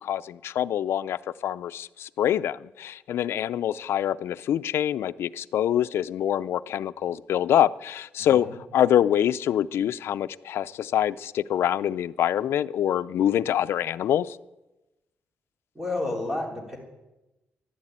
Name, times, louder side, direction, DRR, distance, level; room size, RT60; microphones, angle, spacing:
voice 1, 0.0-8.5 8.7-14.4, left 10 dB, 80° left, 0.5 m, -25 dB
voice 2, 8.2-8.5 15.8-16.8, left 2 dB, 10° right, 3.5 m, -31 dB
13.5 x 11.5 x 8.8 m
wide cardioid pair, 165°, 4 cm